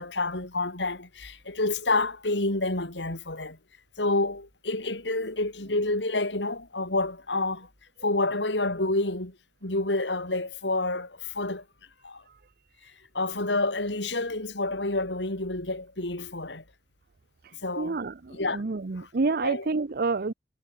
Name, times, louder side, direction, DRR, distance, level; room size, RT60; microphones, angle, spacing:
voice 1, 0.0-3.6 4.0-7.7 8.0-9.4 9.6-11.6 12.0-12.2 13.1-16.6 17.6-18.0 18.3-18.6 19.0-19.1 19.4-19.7, left 2 dB, 80° left, 4.2 m, -28 dB
voice 2, 17.8-20.3, right 3 dB, 55° right, 0.7 m, -28 dB
head